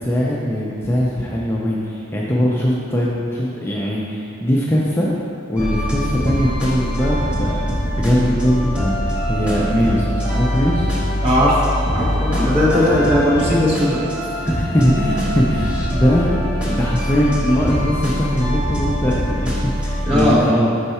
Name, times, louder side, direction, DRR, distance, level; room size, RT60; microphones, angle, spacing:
voice 1, 0.0-5.1 5.5-10.9 14.4-16.4 16.6-20.7, equal, 10° left, -5 dB, 0.4 m, -20 dB
sound 1, 5.6-20.3, equal, 5° right, 1.1 m, -23 dB
voice 2, 11.2-11.6 11.9-14.0 20.0-20.4, left 1 dB, 30° right, -7 dB, 1.3 m, -17 dB
5.5 x 4.5 x 4.2 m, 2.6 s
head